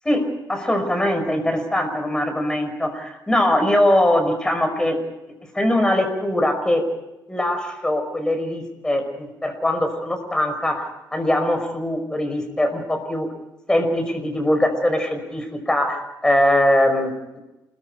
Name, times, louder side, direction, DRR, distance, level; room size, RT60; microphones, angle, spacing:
voice 1, 0.1-5.0 5.5-6.9 7.3-13.3 13.7-17.4, left 1 dB, 10° left, 5 dB, 5.4 m, -21 dB
28.5 x 22.0 x 5.0 m, 0.98 s
cardioid pair, 135°, 7 cm